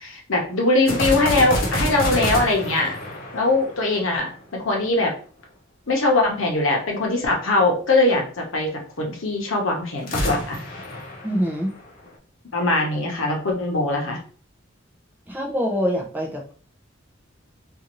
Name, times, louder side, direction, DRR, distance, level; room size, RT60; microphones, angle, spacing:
voice 1, 0.0-3.0 3.3-5.1 5.9-10.6 12.5-14.2, left 2 dB, 75° left, 0 dB, 0.8 m, -21 dB
sound 1, 0.9-4.3 10.0-12.1, left 1 dB, 45° left, 0.7 m, -27 dB
voice 2, 11.2-11.7 15.3-16.5, equal, 10° right, -1 dB, 0.5 m, -25 dB
2.6 x 2.5 x 2.9 m, 0.42 s
head